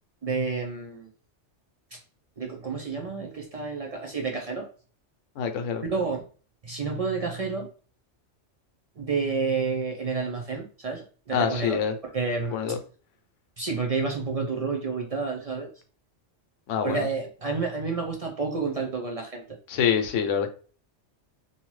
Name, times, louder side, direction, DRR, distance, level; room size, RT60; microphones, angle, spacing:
voice 1, 0.2-1.1 1.9-2.0 2.4-4.7 5.8-6.2 6.6-7.7 9.0-11.8 12.1-12.6 13.6-15.7 16.8-19.4, right 4 dB, 60° right, 1 dB, 0.4 m, -29 dB
voice 2, 5.4-5.8 11.3-11.9 12.5-12.8 16.7-17.0 19.7-20.5, left 7 dB, 85° left, 7 dB, 0.9 m, -25 dB
2.7 x 2.3 x 3.1 m, 0.39 s
omnidirectional pair, 1.2 m